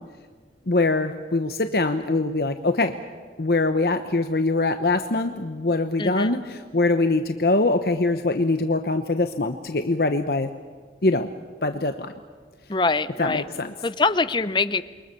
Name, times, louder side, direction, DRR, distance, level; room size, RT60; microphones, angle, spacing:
voice 1, 0.7-2.9 3.4-10.5 11.0-11.3 11.6-12.1 13.2-13.7, left 2 dB, 60° left, 7 dB, 1.0 m, -23 dB
voice 2, 6.0-6.3 12.7-13.4 13.8-14.8, left 3 dB, 25° left, 14 dB, 0.7 m, -23 dB
28.5 x 23.0 x 6.8 m, 1.5 s
head